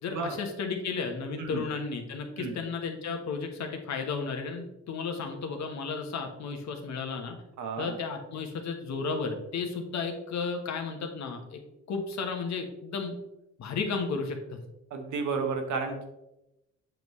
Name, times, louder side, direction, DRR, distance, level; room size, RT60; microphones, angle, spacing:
voice 1, 0.0-7.4 7.8-11.6 11.9-13.2 13.6-14.6, left 4 dB, 65° left, 4 dB, 1.3 m, -33 dB
voice 2, 7.6-7.9 14.9-16.0, right 4 dB, 75° right, 4 dB, 1.4 m, -32 dB
7.6 x 5.4 x 3.2 m, 0.89 s
cardioid pair, 90°, 30 cm